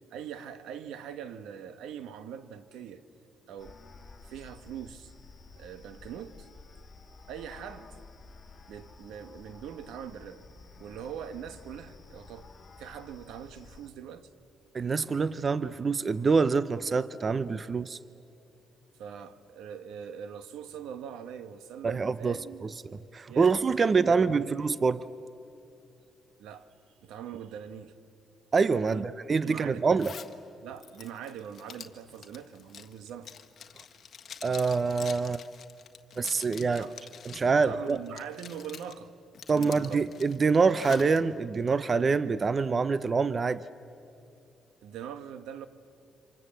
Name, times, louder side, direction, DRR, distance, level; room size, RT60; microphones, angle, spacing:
voice 1, 0.1-3.0 3.5-3.8 4.2-5.1 5.5-6.5 7.3-7.9 8.7-10.4 10.8-12.5 12.8-14.3 19.0-22.7 23.3-24.5 26.4-26.7 27.0-27.9 28.8-29.9 30.6-33.3 36.7-36.9 37.6-39.1 39.5-40.1 44.8-45.7, right 8 dB, 90° right, 1.2 m, -42 dB
sound 1, 3.6-13.9, left 4 dB, 30° left, 2.6 m, -52 dB
voice 2, 14.7-18.0 21.8-22.4 22.8-25.0 28.5-30.1 34.4-35.4 36.2-36.9 37.2-38.0 39.5-43.6, right 4 dB, 35° right, 0.6 m, -26 dB
Zipper (clothing), 30.0-30.3 30.8-37.5 37.9-38.9 39.3-41.2, left 7 dB, 55° left, 1.5 m, -46 dB
28.0 x 26.0 x 7.7 m
cardioid pair, 90°, 0 cm